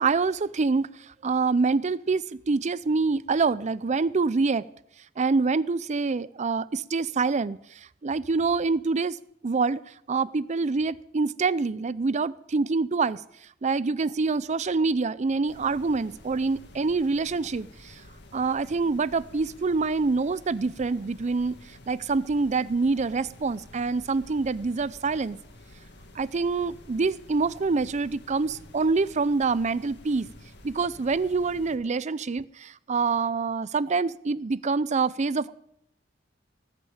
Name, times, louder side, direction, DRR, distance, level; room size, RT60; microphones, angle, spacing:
voice 1, 0.0-4.6 5.2-9.2 9.4-9.8 10.1-13.2 13.6-18.0 18.3-25.4 26.2-30.3 30.6-35.5, right 4 dB, 35° right, 18 dB, 0.5 m, -26 dB
sound 1, 15.5-31.8, left 1 dB, 60° left, 2.1 m, -50 dB
19.0 x 6.3 x 8.8 m, 0.76 s
head